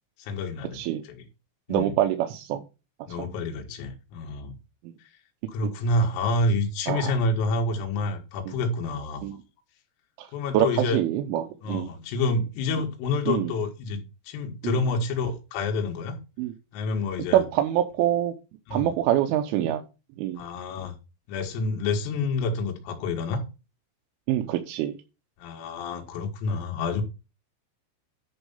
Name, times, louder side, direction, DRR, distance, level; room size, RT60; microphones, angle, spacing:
voice 1, 0.2-1.3 1.7-2.0 3.1-4.6 5.5-9.3 10.3-11.0 11.6-16.2 16.7-17.5 18.7-18.9 20.4-21.0 21.3-23.4 25.4-27.0, left 2 dB, 85° left, 4.2 m, -28 dB
voice 2, 1.7-2.6 4.8-4.9 6.9-7.1 8.5-8.6 9.2-9.3 10.2-10.3 10.5-10.7 10.9-11.9 13.3-13.5 14.6-14.8 16.4-16.5 17.3-18.3 18.7-19.8 20.2-20.4 24.3-24.9, right 12 dB, 80° right, 3.1 m, -25 dB
10.5 x 4.5 x 5.5 m
omnidirectional pair, 5.8 m